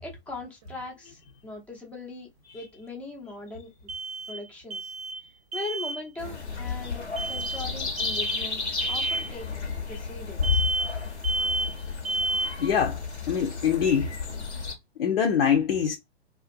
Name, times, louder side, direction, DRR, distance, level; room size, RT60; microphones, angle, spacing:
voice 1, 0.0-2.3 2.5-3.9 4.3-4.9 5.5-8.6 8.9-9.5 9.9-10.6, left 3 dB, 5° left, 0.4 m, -40 dB
sound 1, 0.6-0.7 3.9-4.5 4.7-5.3 5.5-6.0 7.2-7.7 8.0-8.5 8.8-9.3 10.4-11.0 11.2-11.8 12.0-12.6, right 2 dB, 35° right, 0.6 m, -30 dB
sound 2, 6.2-14.7, left 5 dB, 85° left, 1.2 m, -32 dB
voice 2, 12.6-13.0 13.3-14.1 15.0-16.0, left 7 dB, 60° left, 0.7 m, -23 dB
2.5 x 2.4 x 2.5 m
figure-of-eight pair, 115°, 33 cm